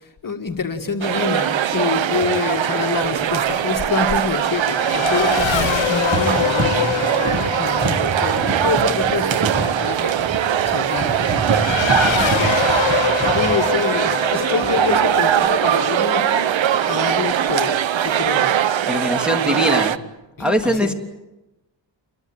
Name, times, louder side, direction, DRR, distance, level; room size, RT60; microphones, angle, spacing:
voice 1, 0.0-10.2 10.6-12.8 13.3-16.5 16.9-18.6 20.4-20.9, left 5 dB, 45° left, 4 dB, 2.0 m, -27 dB
sound 1, 1.0-20.0, right 10 dB, 85° right, 1.0 m, -21 dB
sound 2, 2.1-2.3 5.4-5.8 6.1-14.3 14.6-15.1, right 2 dB, 30° right, 6.3 m, -28 dB
Race car auto racing / Accelerating revving vroom, 2.7-16.8, left 11 dB, 90° left, 1.1 m, -26 dB
voice 2, 11.9-12.5 18.8-20.0 20.4-20.9, equal, ahead, 4 dB, 3.4 m, -22 dB
28.5 x 23.0 x 8.9 m, 0.99 s
wide cardioid pair, 100°, 45 cm